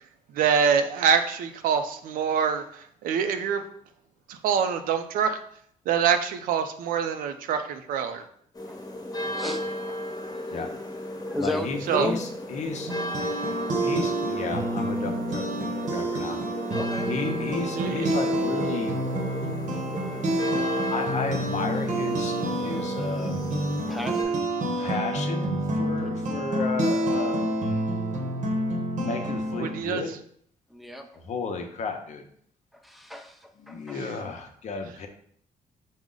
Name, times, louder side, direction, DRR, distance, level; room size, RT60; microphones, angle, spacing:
voice 1, 0.3-3.6 4.3-5.4 5.9-8.2 11.9-12.1 17.8-18.1 29.6-30.0, right 7 dB, 85° right, 8 dB, 0.4 m, -25 dB
sound 1, 8.5-24.2, left 1 dB, 25° left, 1.0 m, -34 dB
voice 2, 9.4-10.7 11.3-12.2 16.7-17.3 19.7-19.8 20.1-20.6 23.9-24.4 25.8-26.1 30.7-31.2 32.7-34.0, left 1 dB, ahead, 4 dB, 0.5 m, -35 dB
voice 3, 11.4-12.9 13.8-16.4 17.1-19.0 20.9-23.5 24.8-27.5 28.9-30.1 31.2-32.2 33.6-35.1, left 4 dB, 55° left, 5 dB, 0.7 m, -33 dB
sound 2, 12.9-29.8, right 1 dB, 60° right, 0.8 m, -28 dB
4.8 x 2.1 x 3.8 m, 0.63 s
cardioid pair, 95°, 14 cm